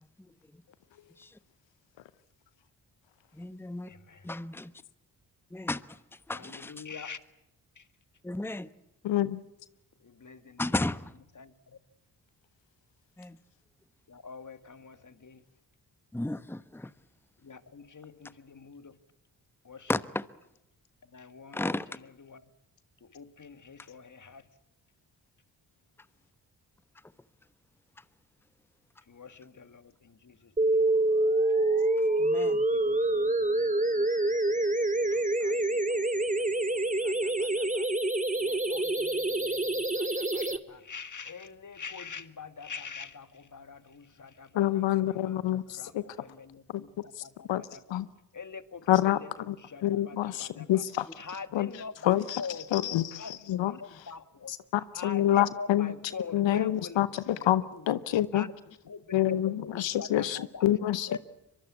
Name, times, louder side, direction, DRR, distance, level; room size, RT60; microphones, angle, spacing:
voice 1, 3.4-3.9 4.2-4.7 5.5-6.0 6.3-6.8 8.2-8.7 10.6-11.1 13.2-13.4 16.1-16.9 19.9-20.2 21.5-21.9 32.2-32.6, left 2 dB, 5° left, 15 dB, 1.1 m, -33 dB
voice 2, 3.9-4.2 6.3-7.2 7.8-7.9 10.0-10.6 11.4-11.8 14.1-15.4 17.4-18.9 19.6-19.9 21.1-21.6 22.3-22.4 23.1-24.4 29.1-30.8 32.7-37.9 38.4-45.4 45.7-48.0 48.3-50.8 51.2-54.5 54.9-57.0 57.4-57.8 58.3-58.5 58.9-60.7 61.1-61.2, left 5 dB, 40° left, 12 dB, 1.9 m, -45 dB
voice 3, 9.1-9.4 44.5-46.0 46.7-46.8 47.2-47.3 47.5-47.6 47.9-48.1 48.9-49.2 49.5-49.6 49.8-51.0 51.5-52.4 52.7-54.1 54.5-55.9 56.3-58.5 59.1-61.2, left 13 dB, 75° left, 16 dB, 0.8 m, -27 dB
sound 1, 30.6-40.6, right 2 dB, 15° right, 2.1 m, -26 dB
23.5 x 23.0 x 8.4 m, 0.84 s
supercardioid pair, 40°, 44 cm